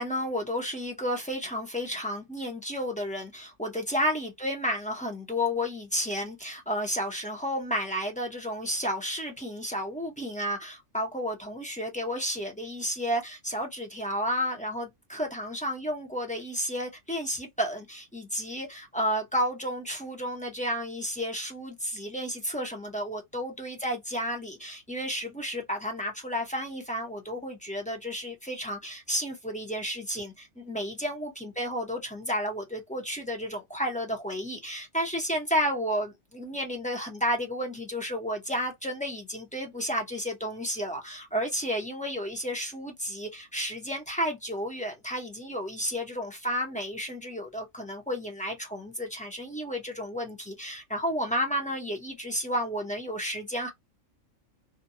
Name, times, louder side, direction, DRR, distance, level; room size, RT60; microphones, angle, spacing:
voice 1, 0.0-53.7, equal, 10° left, 0.5 m, -32 dB
2.6 x 2.2 x 2.6 m
omnidirectional pair, 1.3 m